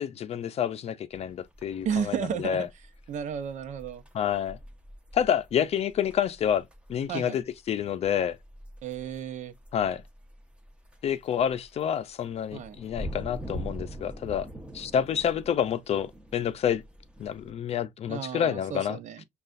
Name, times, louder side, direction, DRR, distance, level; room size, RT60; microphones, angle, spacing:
voice 1, 0.0-2.7 4.1-4.6 5.1-8.4 9.7-10.0 11.0-14.5 14.7-16.8 17.2-19.0, left 9 dB, 55° left, 0.5 m, -28 dB
sound 1, 1.1-17.5, equal, 10° right, 0.9 m, -44 dB
voice 2, 1.8-2.6 3.1-4.0 7.1-7.4 8.8-9.5 12.5-12.8 18.1-19.2, right 8 dB, 70° right, 0.7 m, -33 dB
6.5 x 2.4 x 2.5 m
cardioid pair, 140°, 13 cm